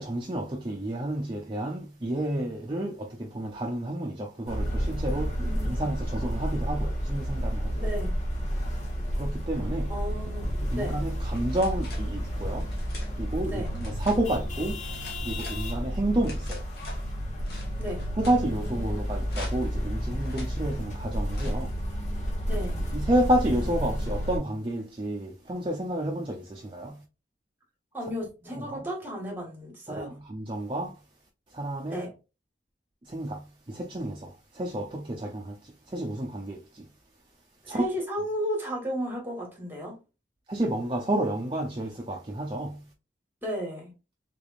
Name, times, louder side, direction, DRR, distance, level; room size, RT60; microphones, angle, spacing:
voice 1, 0.0-5.4 5.6-7.7 9.2-9.9 10.7-12.7 13.1-14.8 15.2-16.6 18.2-21.7 22.9-27.0 28.6-28.8 29.9-30.9 31.5-32.1 33.0-36.9 37.7-37.9 40.5-42.9, right 1 dB, 25° right, 0.5 m, -30 dB
sound 1, 4.5-24.4, equal, 40° left, 1.2 m, -31 dB
voice 2, 5.4-5.9 7.7-8.1 9.9-10.5 10.7-11.0 13.5-13.7 17.8-18.0 22.5-22.8 27.9-30.1 31.9-32.1 37.6-40.0 43.4-43.9, equal, 10° right, 1.5 m, -34 dB
sound 2, 11.3-12.1 12.6-13.1 13.6-14.2 14.8-15.6 16.2-17.0 17.4-18.4 19.2-19.8 20.2-20.5 21.3-21.7, left 2 dB, 60° left, 1.3 m, -45 dB
3.7 x 3.3 x 2.4 m
head